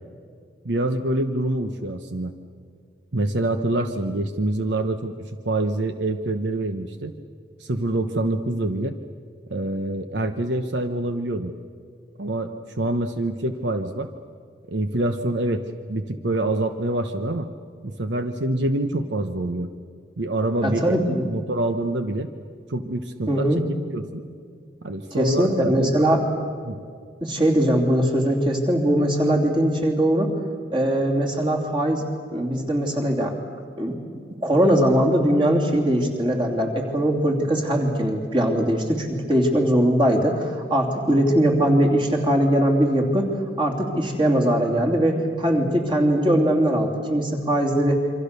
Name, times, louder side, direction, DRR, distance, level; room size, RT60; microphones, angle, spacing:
voice 1, 0.6-2.3 3.1-7.1 7.6-9.0 9.5-11.5 12.2-14.1 14.7-17.5 17.8-19.7 20.2-22.3 22.7-23.5 23.9-24.2 24.8-25.9 26.6-26.8, right 2 dB, 75° right, 8 dB, 1.0 m, -26 dB
voice 2, 20.6-21.3 23.3-23.6 25.1-26.2 27.2-30.3 30.7-32.0 32.3-33.3 33.8-34.0 34.4-43.3 43.6-48.0, right 1 dB, 25° right, 1 dB, 3.0 m, -21 dB
27.5 x 24.5 x 6.8 m, 2.2 s
head